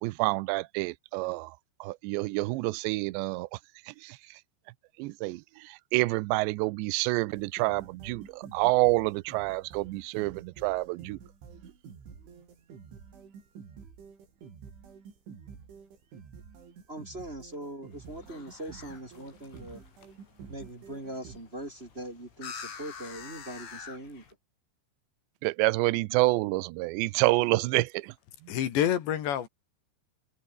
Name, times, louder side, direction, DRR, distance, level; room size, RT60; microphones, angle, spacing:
voice 1, 0.0-3.6 3.9-4.4 5.0-11.2 25.4-28.1 28.4-28.5, right 21 dB, 85° right, 2.6 m, -28 dB
sound 1, 7.3-21.4, right 6 dB, 70° right, 7.6 m, -49 dB
voice 2, 16.9-19.8 20.5-24.2, right 1 dB, 15° right, 2.2 m, -41 dB
sound 2, 17.9-24.3, left 6 dB, 85° left, 8.1 m, -47 dB
voice 3, 28.5-29.5, left 10 dB, 65° left, 4.4 m, -27 dB
omnidirectional pair, 5.7 m